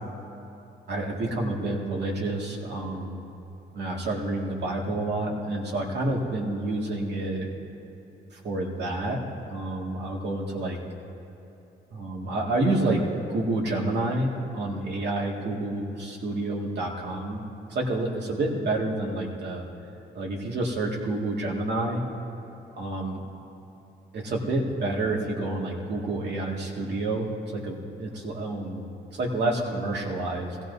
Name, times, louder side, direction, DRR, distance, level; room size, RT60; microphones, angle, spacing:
voice 1, 0.9-3.3 3.7-7.5 8.3-9.2 9.5-10.8 11.9-13.0 13.3-17.4 17.7-19.6 20.1-22.0 22.8-23.2 24.1-30.6, right 2 dB, 60° right, -2 dB, 2.2 m, -29 dB
21.5 x 16.5 x 2.7 m, 3.0 s
cardioid pair, 90°, 20 cm